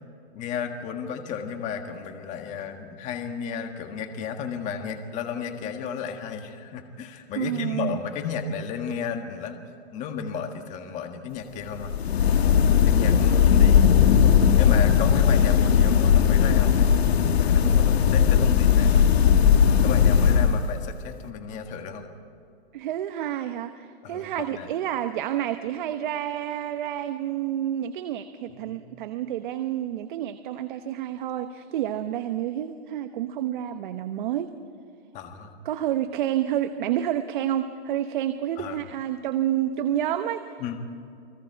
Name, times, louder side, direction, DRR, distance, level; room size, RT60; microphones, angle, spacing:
voice 1, 0.3-9.6 9.9-11.9 12.7-14.0 14.2-16.9 17.4-19.1 19.8-22.1 24.0-24.2 24.5-24.7 28.7-28.8 35.1-35.5 38.6-38.8 40.6-40.8, left 6 dB, 20° left, 6 dB, 1.6 m, -33 dB
voice 2, 7.4-8.0 22.7-34.5 35.6-40.6, right 11 dB, 50° right, 9 dB, 1.1 m, -29 dB
sound 1, 11.8-20.9, left 8 dB, 75° left, 1.7 m, -18 dB
30.0 x 20.0 x 4.6 m, 2.6 s
hypercardioid pair, 160°, 32 cm